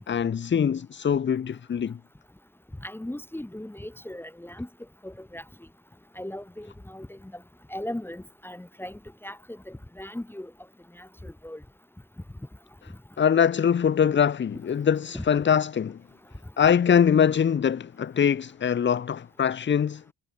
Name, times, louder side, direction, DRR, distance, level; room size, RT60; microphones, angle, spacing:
voice 1, 0.1-2.0 13.2-16.0 16.6-20.1, left 8 dB, 30° left, 0.8 m, -23 dB
voice 2, 2.8-4.7 5.0-5.4 6.2-7.4 7.7-10.5 10.9-11.6 15.1-15.3, left 1 dB, 5° left, 1.8 m, -38 dB
cardioid pair, 95°, 35 cm